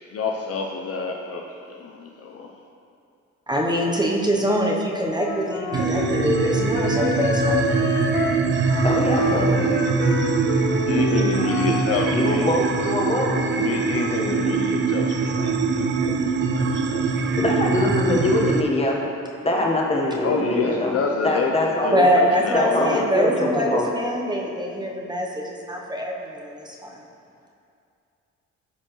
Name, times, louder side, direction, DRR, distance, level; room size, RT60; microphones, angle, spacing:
voice 1, 0.1-2.5 10.9-12.5 13.5-16.2 16.5-17.4 20.2-23.0, left 4 dB, 50° left, 1 dB, 0.6 m, -28 dB
voice 2, 3.5-7.7 21.9-27.0, equal, 15° right, -1 dB, 0.8 m, -24 dB
Wind instrument woodwind instrument, 5.1-12.4, left 4 dB, 75° left, 0.9 m, -28 dB
sound 1, 5.7-18.6, right 4 dB, 40° right, 0.5 m, -23 dB
voice 3, 8.8-9.6 12.1-13.3 17.4-19.0 19.4-20.9 21.2-21.9 22.5-23.9, left 1 dB, 20° left, -2 dB, 1.2 m, -23 dB
12.0 x 4.3 x 3.1 m, 2.5 s
cardioid pair, 90°, 30 cm